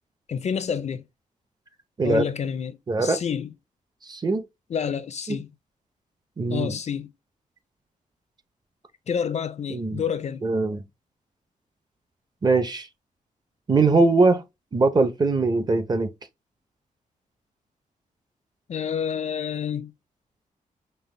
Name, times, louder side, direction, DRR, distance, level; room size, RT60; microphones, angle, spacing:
voice 1, 0.3-1.1 2.0-3.5 4.7-5.5 6.5-7.1 9.1-10.5 18.7-19.9, left 7 dB, 50° left, 0.5 m, -29 dB
voice 2, 2.9-3.2 4.1-4.4 5.3-5.4 6.4-6.7 9.7-10.0 10.4-10.8 12.4-12.9 13.7-14.4 14.7-16.1, right 3 dB, 30° right, 0.6 m, -21 dB
5.4 x 2.1 x 3.2 m
wide cardioid pair, 125°, 14 cm